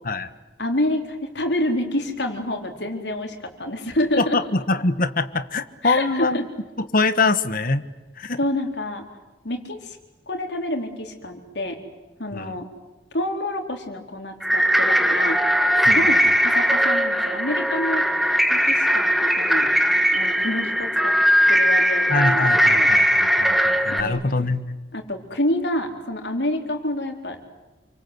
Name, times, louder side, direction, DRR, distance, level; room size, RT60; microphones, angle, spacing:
voice 1, 0.6-4.4 5.8-6.4 8.4-9.1 9.4-10.0 10.3-11.8 12.2-12.7 13.1-15.4 15.9-18.1 18.5-19.7 20.1-21.1 21.5-22.9 23.9-24.2 24.9-27.5, left 1 dB, 75° left, 3 dB, 4.2 m, -27 dB
voice 2, 4.2-6.5 6.8-7.8 8.2-8.4 12.3-12.5 15.8-16.2 22.1-24.8, left 3 dB, 55° left, 11 dB, 1.5 m, -24 dB
sound 1, 14.4-24.0, equal, ahead, 1.5 m, -19 dB
28.5 x 25.0 x 8.2 m, 1.1 s
head